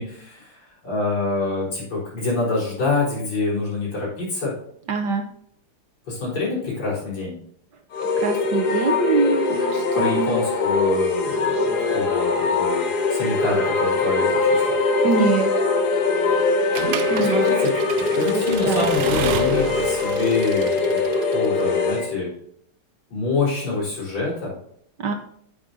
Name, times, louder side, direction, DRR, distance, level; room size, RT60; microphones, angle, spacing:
voice 1, 0.0-4.5 6.1-7.4 9.9-14.7 17.2-22.3 23.1-24.5, left 3 dB, 75° left, -7 dB, 5.1 m, -26 dB
voice 2, 4.9-5.2 8.2-10.3 15.0-15.5 17.1-17.4 18.7-18.9 25.0-25.1, right 4 dB, 60° right, 4 dB, 1.3 m, -23 dB
sound 1, 7.9-22.1, left 3 dB, 55° left, 1.3 m, -22 dB
Accelerating revving vroom / Mechanisms, 16.7-21.6, right 9 dB, 75° right, 0.9 m, -31 dB
8.9 x 8.7 x 2.7 m, 0.66 s
omnidirectional pair, 2.4 m